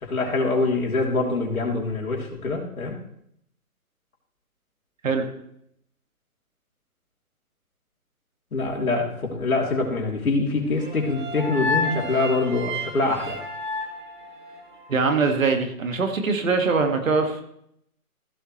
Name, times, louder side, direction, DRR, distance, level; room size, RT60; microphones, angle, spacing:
voice 1, 0.0-3.0 8.5-13.4, left 3 dB, 70° left, 0 dB, 3.1 m, -24 dB
sound 1, 10.8-15.0, left 2 dB, 30° right, 1.4 m, -31 dB
voice 2, 14.9-17.4, right 4 dB, 60° right, 5 dB, 1.9 m, -22 dB
15.0 x 7.1 x 3.1 m, 0.73 s
figure-of-eight pair, 155°, 44 cm